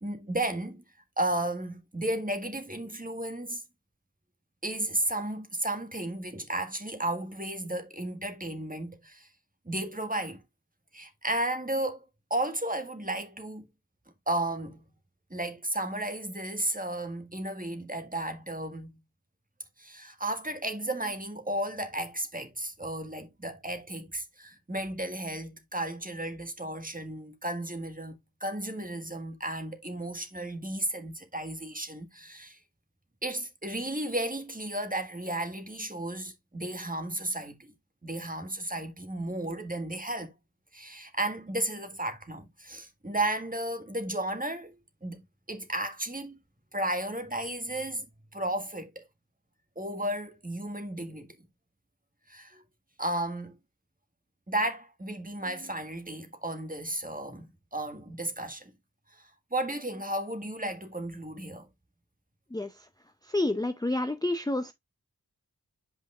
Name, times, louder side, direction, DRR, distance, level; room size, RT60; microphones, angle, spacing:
voice 1, 0.0-0.8 1.2-3.6 4.6-9.3 9.6-10.4 10.9-12.0 12.3-13.7 14.3-14.8 15.3-19.0 19.8-32.6 33.2-37.7 38.0-40.3 40.7-44.7 45.0-46.4 46.7-48.1 48.3-49.0 49.7-51.3 52.3-52.6 53.0-53.6 54.5-57.5 57.7-58.7 59.1-61.7, right 1 dB, 20° right, 1.6 m, -33 dB
voice 2, 63.3-64.7, left 2 dB, 10° left, 0.6 m, -28 dB
8.5 x 5.1 x 2.4 m
wide cardioid pair, 50°, 38 cm